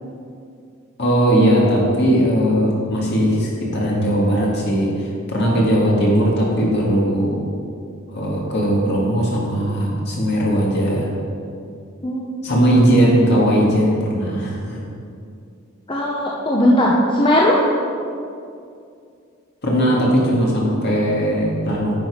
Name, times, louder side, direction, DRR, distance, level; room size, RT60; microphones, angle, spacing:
voice 1, 1.0-4.9 5.3-7.4 8.1-11.1 12.4-14.9 19.6-21.9, equal, 55° left, -4 dB, 2.0 m, -18 dB
voice 2, 15.9-17.6, left 1 dB, 25° left, -3 dB, 0.7 m, -17 dB
9.3 x 6.2 x 5.0 m, 2.4 s
head